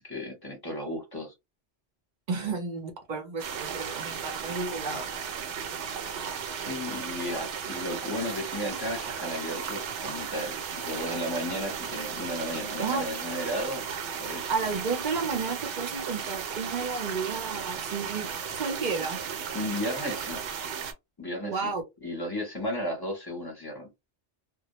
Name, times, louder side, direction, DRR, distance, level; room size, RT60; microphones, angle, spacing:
voice 1, 0.0-1.3 2.3-2.5 6.6-13.8 14.2-14.5 19.5-20.4 21.2-21.7 22.0-23.9, left 1 dB, 20° left, 0.7 m, -34 dB
voice 2, 2.3-5.2 12.8-13.1 14.5-18.3 18.5-19.2 21.4-21.8, right 4 dB, 45° right, 0.7 m, -32 dB
sound 1, 3.4-20.9, right 7 dB, 80° right, 0.9 m, -35 dB
2.2 x 2.1 x 2.9 m
omnidirectional pair, 1.2 m